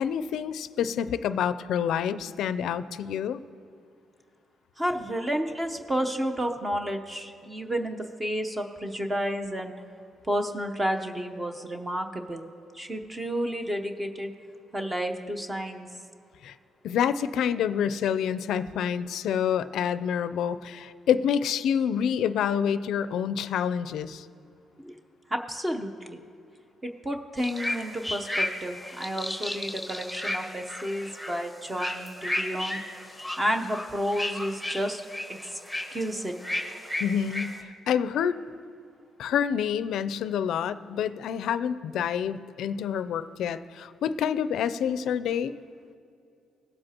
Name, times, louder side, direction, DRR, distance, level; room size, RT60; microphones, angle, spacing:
voice 1, 0.0-3.4 16.4-16.5 16.8-24.3 37.0-37.6 37.9-38.4 39.2-45.5, left 8 dB, 75° left, 14 dB, 0.4 m, -27 dB
voice 2, 4.8-9.7 10.3-12.5 12.7-14.3 14.7-15.9 24.8-24.9 25.3-26.2 26.8-32.8 33.4-35.6 35.9-36.4, equal, 20° right, 4 dB, 0.8 m, -31 dB
sound 1, 27.4-37.6, left 1 dB, ahead, 1.2 m, -34 dB
18.0 x 7.8 x 2.9 m, 2.5 s
cardioid pair, 90°, 0 cm